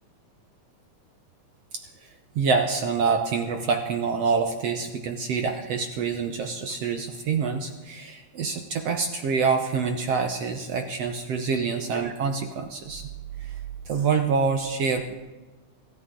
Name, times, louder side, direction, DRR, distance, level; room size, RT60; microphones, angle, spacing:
voice 1, 2.3-13.1 13.4-13.5 13.9-15.1, right 5 dB, 70° right, 5 dB, 1.6 m, -26 dB
25.0 x 14.0 x 3.8 m, 1.2 s
omnidirectional pair, 4.0 m